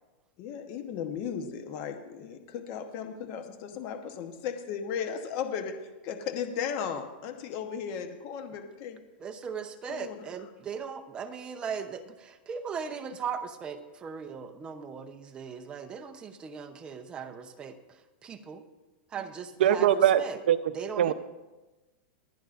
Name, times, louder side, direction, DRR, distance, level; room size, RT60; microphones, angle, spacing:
voice 1, 0.4-5.7 6.0-9.0 9.9-10.2, left 7 dB, 40° left, 7 dB, 1.0 m, -36 dB
voice 2, 9.2-18.6 19.1-20.4 20.7-21.1, right 6 dB, 15° right, 7 dB, 0.7 m, -38 dB
voice 3, 19.6-20.2 20.5-20.6 21.0-21.1, right 10 dB, 70° right, 11 dB, 0.7 m, -21 dB
27.5 x 9.2 x 2.5 m, 1.1 s
supercardioid pair, 160°, 6 cm